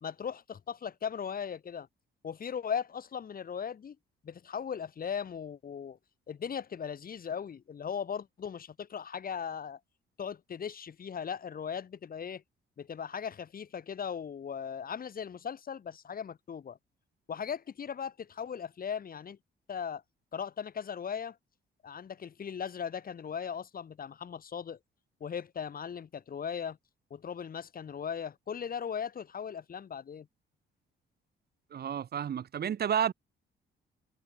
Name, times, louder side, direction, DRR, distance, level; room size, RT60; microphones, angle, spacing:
voice 1, 0.0-1.9 2.2-4.0 4.2-6.0 6.3-9.8 10.2-12.4 12.8-16.8 17.3-19.4 19.7-20.0 20.3-21.4 21.8-24.8 25.2-26.8 27.1-30.3, left 7 dB, 45° left, 2.2 m, -38 dB
voice 2, 31.7-33.1, right 8 dB, 55° right, 1.4 m, -31 dB
cardioid pair, 90°, 20 cm